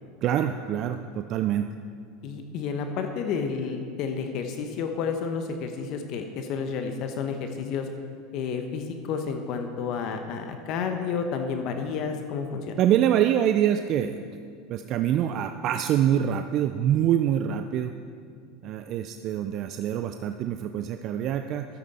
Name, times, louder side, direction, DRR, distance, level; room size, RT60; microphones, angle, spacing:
voice 1, 0.2-1.7 12.8-14.2 14.7-17.9 18.6-21.7, right 10 dB, 50° right, 8 dB, 0.4 m, -25 dB
voice 2, 2.2-7.9 8.3-12.8, left 6 dB, 55° left, 6 dB, 0.9 m, -31 dB
12.5 x 8.5 x 4.2 m, 2.2 s
hypercardioid pair, 90°, 0 cm